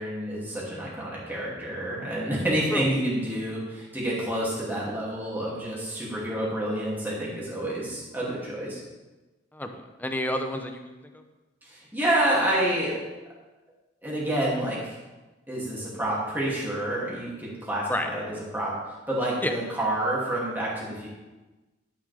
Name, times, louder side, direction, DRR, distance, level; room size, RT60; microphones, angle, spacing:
voice 1, 0.0-8.8 11.6-13.0 14.0-14.9 15.5-18.7 19.1-21.1, right 1 dB, 10° right, -6 dB, 2.7 m, -28 dB
voice 2, 9.5-10.9 17.9-18.1 19.4-19.6, left 1 dB, 10° left, 5 dB, 0.7 m, -29 dB
11.5 x 7.4 x 3.5 m, 1.2 s
head